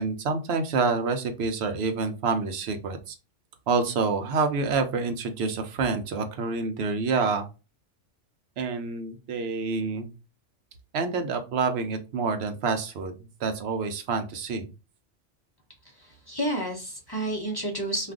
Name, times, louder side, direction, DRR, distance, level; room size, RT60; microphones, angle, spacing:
voice 1, 0.0-3.2 3.7-7.5 8.6-10.1 10.9-13.1 13.4-14.7, right 4 dB, 65° right, 7 dB, 0.7 m, -27 dB
voice 2, 16.0-18.1, right 1 dB, 25° left, -1 dB, 0.6 m, -30 dB
2.4 x 2.4 x 3.5 m, 0.30 s
omnidirectional pair, 1.3 m